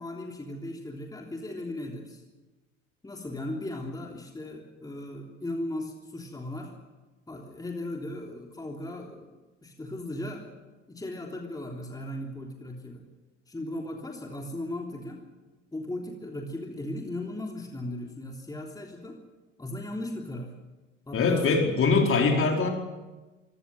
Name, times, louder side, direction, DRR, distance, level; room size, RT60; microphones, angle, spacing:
voice 1, 0.0-2.2 3.0-6.7 7.3-9.3 9.6-10.5 10.9-13.0 13.5-15.2 15.7-19.2 19.6-20.5 21.1-21.7, left 1 dB, 10° left, 1 dB, 3.4 m, -37 dB
voice 2, 21.1-22.7, left 4 dB, 35° left, 2 dB, 4.6 m, -22 dB
25.0 x 17.5 x 7.7 m, 1.2 s
figure-of-eight pair, 65°, 38 cm